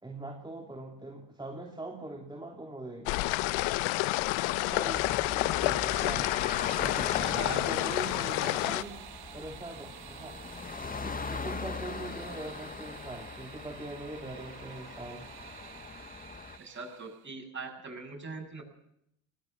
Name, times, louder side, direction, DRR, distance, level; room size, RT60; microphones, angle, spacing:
voice 1, 0.0-3.1 4.6-6.3 6.8-8.9 9.3-10.4 11.0-15.3, right 2 dB, 10° right, 1 dB, 2.8 m, -42 dB
sound 1, 3.1-8.8, left 20 dB, 85° left, 0.7 m, -29 dB
sound 2, 4.9-16.6, left 4 dB, 20° left, 0.9 m, -41 dB
sound 3, 6.2-17.3, right 12 dB, 55° right, 1.2 m, -50 dB
voice 2, 7.1-8.7 16.6-18.6, right 3 dB, 25° right, -1 dB, 7.6 m, -42 dB
19.5 x 19.0 x 7.3 m, 0.74 s
supercardioid pair, 70°, 46 cm